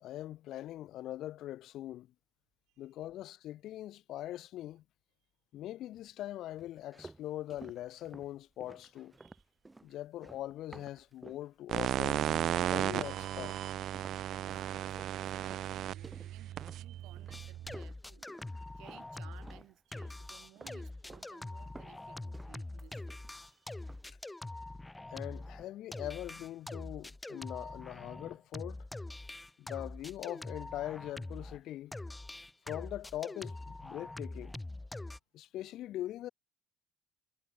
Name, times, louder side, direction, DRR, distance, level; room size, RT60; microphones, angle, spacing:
voice 1, 0.0-2.1 2.8-4.8 5.5-9.1 9.8-12.2 12.6-13.6 25.1-28.8 29.6-31.9 32.7-34.5 35.3-36.3, left 13 dB, 60° left, 1.2 m, -42 dB
sound 1, 6.6-11.5 11.8-12.5 12.8-19.1 19.4-20.2 20.6-21.3 21.6-23.5 23.8-24.1, right 2 dB, 15° right, 3.1 m, -54 dB
sound 2, 11.7-17.8, right 12 dB, 55° right, 0.4 m, -35 dB
voice 2, 13.8-18.3 18.8-23.8 25.2-25.3 34.8-34.9, right 20 dB, 80° right, 5.2 m, -59 dB
sound 3, 17.3-19.6 19.9-31.6 31.9-35.2, left 2 dB, 10° left, 0.6 m, -44 dB
cardioid pair, 130°, 0 cm